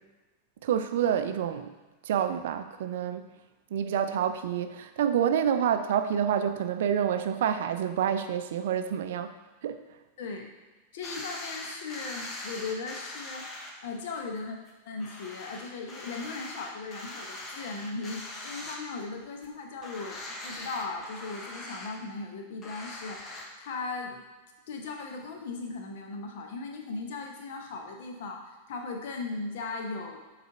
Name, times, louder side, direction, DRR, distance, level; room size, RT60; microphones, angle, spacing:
voice 1, 0.6-1.7 2.0-3.2 3.7-9.3 9.6-9.8, right 9 dB, 55° right, 9 dB, 0.4 m, -28 dB
voice 2, 10.2-10.5 10.9-13.5 13.8-14.6 14.8-24.2 24.7-30.2, left 3 dB, 55° left, 2 dB, 0.9 m, -38 dB
sound 1, 11.0-13.7 14.2-14.3 14.7-14.8 15.0-19.1 19.4-19.5 19.8-21.9 22.6-23.4, left 2 dB, 25° left, 1.0 m, -41 dB
7.8 x 3.3 x 3.8 m, 1.2 s
figure-of-eight pair, 90°, 0 cm